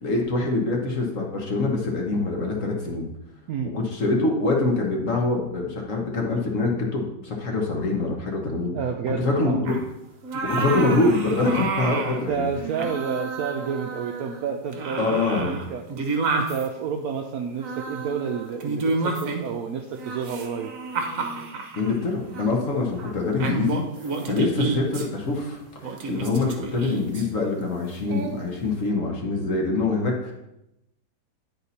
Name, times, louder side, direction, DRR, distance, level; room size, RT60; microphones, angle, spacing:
voice 1, 0.0-3.1 3.7-8.7 9.2-9.8 10.4-12.5 15.0-15.5 21.8-30.3, left 3 dB, 50° left, 0 dB, 1.3 m, -25 dB
voice 2, 8.7-9.6 10.6-10.7 12.3-15.8 16.3-20.7, right 7 dB, 75° right, 4 dB, 0.8 m, -30 dB
sound 1, 9.7-9.8 10.2-12.2 12.5-14.4 14.7-16.7 17.6-19.6 20.0-21.9 22.3-22.5 23.0-23.1 23.4-25.1 25.8-27.2 28.1-28.4, right 3 dB, 55° right, 1.1 m, -30 dB
9.7 x 4.2 x 4.1 m, 0.89 s
omnidirectional pair, 2.0 m